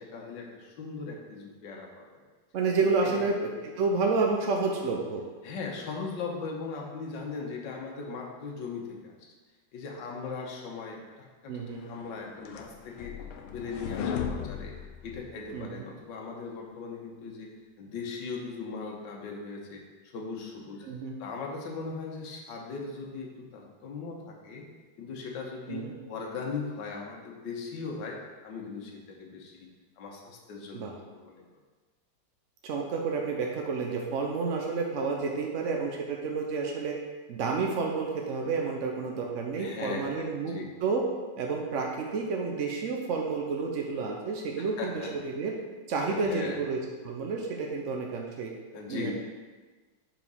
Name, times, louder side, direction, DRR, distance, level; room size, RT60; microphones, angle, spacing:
voice 1, 0.0-2.2 2.8-3.2 5.4-9.3 9.7-13.1 13.5-14.7 15.0-17.5 17.8-20.9 21.2-24.6 25.0-29.7 30.0-31.4 39.6-40.7 44.6-45.1 46.0-46.6 48.7-49.1, left 4 dB, 65° left, 0 dB, 1.7 m, -39 dB
voice 2, 2.5-5.2 11.5-11.8 15.5-15.7 20.8-21.1 25.7-25.9 30.7-30.9 32.6-37.0 37.3-41.0 41.4-45.5 45.9-46.8 47.0-48.5 48.9-49.1, right 4 dB, 70° right, 1 dB, 0.7 m, -30 dB
sound 1, 12.0-15.6, left 7 dB, 85° left, 1.5 m, -36 dB
5.9 x 5.1 x 5.4 m, 1.3 s
omnidirectional pair, 2.2 m